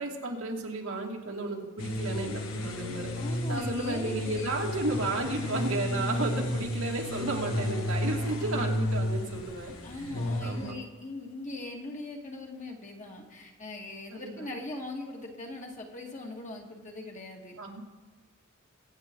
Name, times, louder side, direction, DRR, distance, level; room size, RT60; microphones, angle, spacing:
voice 1, 0.0-3.1 3.5-10.1 10.4-10.7 14.1-14.5 17.6-17.8, right 2 dB, 90° right, -1 dB, 2.5 m, -33 dB
sound 1, 1.8-10.7, left 1 dB, 85° left, 1.5 m, -32 dB
voice 2, 3.2-4.5 4.8-4.9 9.8-17.5, left 2 dB, 35° left, 0 dB, 2.1 m, -40 dB
24.0 x 9.4 x 3.9 m, 1.3 s
head